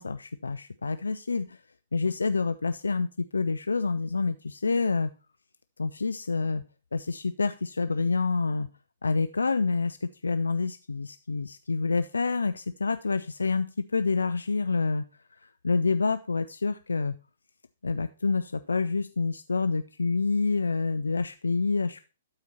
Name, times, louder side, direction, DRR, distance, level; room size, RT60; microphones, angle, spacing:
voice 1, 0.0-1.6 1.9-5.1 5.8-6.6 6.9-8.7 9.0-15.0 15.4-17.2 17.8-22.0, left 4 dB, 80° left, 11 dB, 0.4 m, -27 dB
12.5 x 4.3 x 4.1 m, 0.34 s
figure-of-eight pair, 120°, 0 cm